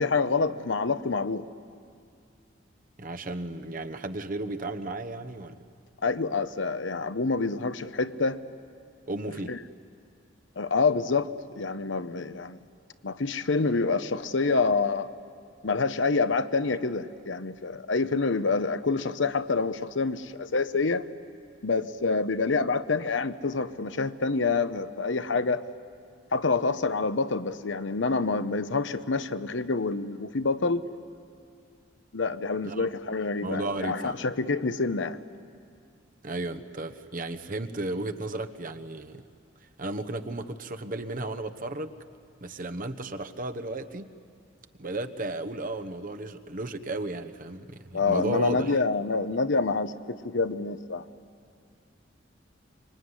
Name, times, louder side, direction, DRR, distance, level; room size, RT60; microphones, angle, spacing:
voice 1, 0.0-1.4 6.0-8.4 9.4-9.6 10.6-12.6 13.0-15.1 15.6-21.0 21.6-25.6 26.3-30.8 32.1-35.2 47.9-51.0, left 4 dB, 70° left, 12 dB, 0.9 m, -27 dB
voice 2, 3.0-5.6 9.1-9.6 32.6-32.9 33.4-34.2 36.2-39.2 39.8-41.9 42.4-44.1 44.8-48.8, right 2 dB, 45° right, 8 dB, 1.1 m, -34 dB
25.5 x 23.5 x 9.8 m, 2.3 s
head